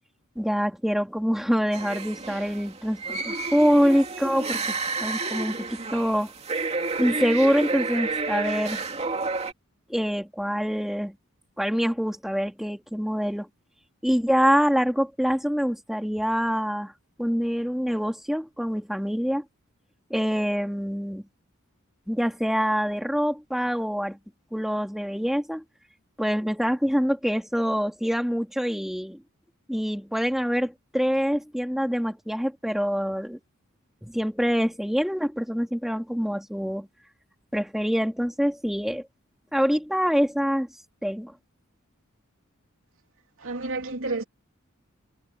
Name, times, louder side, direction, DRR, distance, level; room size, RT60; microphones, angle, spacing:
voice 1, 0.3-6.3 7.0-8.8 9.9-11.1 11.6-13.5 14.0-16.9 17.2-19.4 20.1-21.2 22.1-24.2 24.5-25.6 26.2-29.2 29.7-33.4 34.0-36.9 37.5-39.1 39.5-40.7 41.0-41.3, equal, ahead, 3.3 m, -25 dB
sound 1, 1.7-9.5, right 3 dB, 30° right, 2.7 m, -30 dB
voice 2, 43.4-44.2, right 3 dB, 70° right, 3.0 m, -30 dB
head